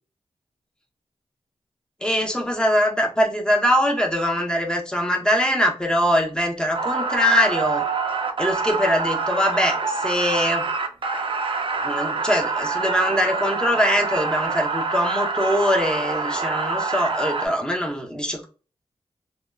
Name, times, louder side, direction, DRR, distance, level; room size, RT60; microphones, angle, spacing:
voice 1, 2.0-7.9 8.4-10.7 11.8-18.4, equal, 10° left, 0.8 m, -22 dB
sound 1, 6.7-17.5, right 4 dB, 50° right, 0.5 m, -26 dB
2.7 x 2.1 x 2.3 m
cardioid pair, 65°, 11 cm